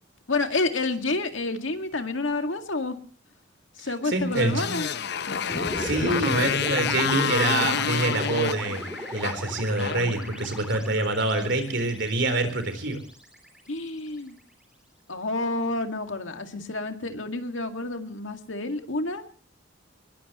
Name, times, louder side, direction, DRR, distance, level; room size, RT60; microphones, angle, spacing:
voice 1, 0.3-3.0 3.8-4.9 13.7-14.4 15.1-19.3, left 2 dB, 85° left, 6 dB, 2.1 m, -29 dB
voice 2, 4.1-4.6 5.4-8.8 9.1-13.0, right 2 dB, 65° right, 9 dB, 3.9 m, -26 dB
Motorcycle, 4.3-10.8, left 6 dB, 60° left, 0.8 m, -29 dB
sound 1, 5.5-13.8, equal, 5° right, 3.5 m, -37 dB
21.5 x 21.0 x 3.1 m, 0.42 s
head